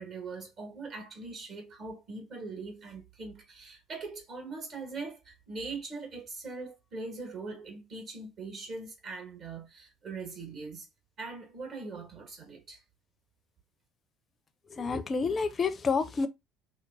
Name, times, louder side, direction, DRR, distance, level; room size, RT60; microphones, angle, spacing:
voice 1, 0.0-10.9 11.2-12.8, right 3 dB, 50° right, 1.5 m, -41 dB
voice 2, 14.7-16.3, left 4 dB, 35° left, 0.5 m, -29 dB
2.9 x 2.2 x 2.5 m
hypercardioid pair, 70°, 0 cm